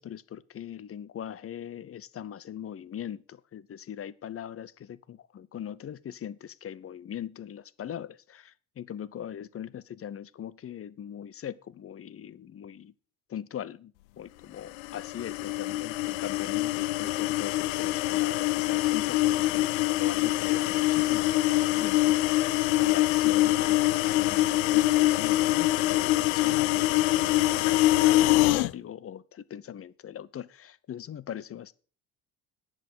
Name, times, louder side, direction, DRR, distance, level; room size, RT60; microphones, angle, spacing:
voice 1, 0.0-12.9 13.3-31.7, left 9 dB, 35° left, 0.8 m, -41 dB
sound 1, 14.8-28.7, left 17 dB, 70° left, 0.6 m, -24 dB
10.5 x 7.7 x 6.8 m
hypercardioid pair, 60°, 42 cm